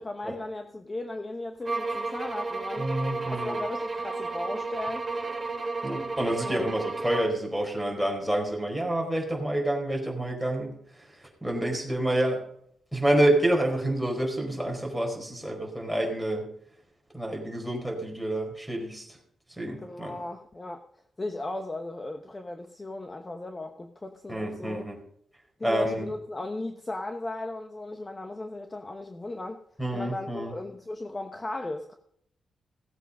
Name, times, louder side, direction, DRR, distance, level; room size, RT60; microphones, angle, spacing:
voice 1, 0.0-2.9 3.3-5.1 6.4-6.7 19.8-20.8 21.2-24.8 25.6-29.6 29.9-31.9, left 2 dB, 20° left, 6 dB, 1.0 m, -36 dB
sound 1, 1.6-7.4, right 3 dB, 25° right, 4.2 m, -32 dB
voice 2, 2.8-3.6 5.8-12.4 12.9-16.5 17.1-19.2 19.6-20.2 24.3-25.0 25.6-26.0 29.8-30.5, right 1 dB, ahead, -1 dB, 4.5 m, -28 dB
17.0 x 8.0 x 5.4 m, 0.69 s
wide cardioid pair, 130°, 0 cm